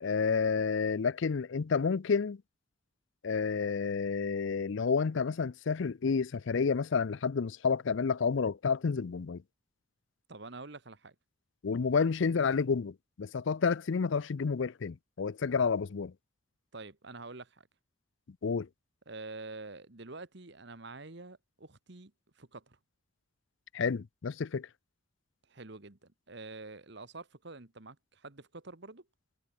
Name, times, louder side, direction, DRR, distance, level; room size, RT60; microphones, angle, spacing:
voice 1, 0.0-2.4 3.2-9.4 11.6-16.1 18.4-18.7 23.7-24.7, left 5 dB, 60° left, 0.5 m, -30 dB
voice 2, 10.3-11.1 16.7-17.7 19.1-22.8 25.5-29.1, right 3 dB, 55° right, 1.4 m, -47 dB
head